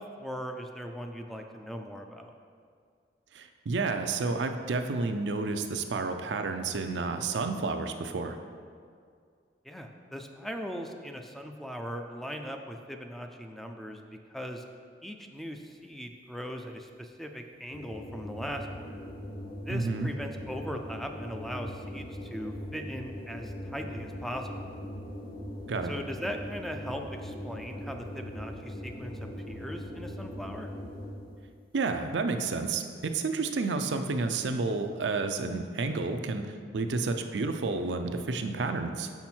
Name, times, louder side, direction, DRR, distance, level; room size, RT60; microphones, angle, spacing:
voice 1, 0.0-2.3 9.6-14.0 14.3-14.6 15.0-19.0 19.6-24.7 25.8-30.7, equal, ahead, 4 dB, 0.4 m, -39 dB
voice 2, 3.3-8.4 19.7-20.1 25.7-25.9 31.7-39.1, right 3 dB, 80° right, 6 dB, 0.5 m, -30 dB
sound 1, 17.7-31.4, left 1 dB, 60° left, 1.1 m, -40 dB
6.2 x 5.8 x 4.4 m, 2.1 s
head